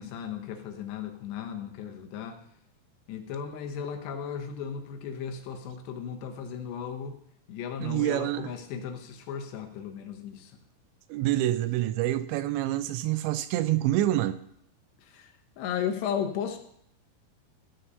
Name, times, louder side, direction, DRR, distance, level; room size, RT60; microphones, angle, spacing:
voice 1, 0.0-2.4 3.1-7.2 7.5-10.6 15.0-16.6, left 7 dB, 80° left, 4 dB, 3.3 m, -35 dB
voice 2, 7.8-8.5 11.1-14.4, right 14 dB, 85° right, 12 dB, 2.8 m, -27 dB
16.0 x 5.6 x 6.7 m, 0.71 s
omnidirectional pair, 5.1 m